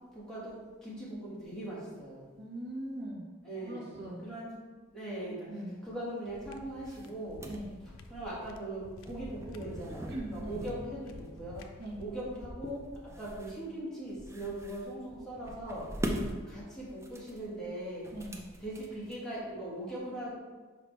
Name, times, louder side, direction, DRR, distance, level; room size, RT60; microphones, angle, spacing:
voice 1, 0.1-0.6 0.8-2.2 3.4-3.8 4.2-4.5 4.9-5.4 5.8-7.4 8.1-11.7 12.0-12.8 13.2-15.9 16.5-18.0 18.6-20.4, right 1 dB, 5° left, -8 dB, 1.8 m, -40 dB
voice 2, 2.4-3.3 3.6-4.2 5.5-5.7 7.5-7.7 10.1-10.6 11.8-11.9 16.1-16.3 18.1-18.4, right 1 dB, 55° right, -3 dB, 1.4 m, -40 dB
sound 1, 6.3-12.4, left 2 dB, 90° left, 0.5 m, -52 dB
sound 2, 6.7-19.5, equal, 15° right, 0.5 m, -43 dB
5.8 x 5.0 x 3.2 m, 1.3 s
head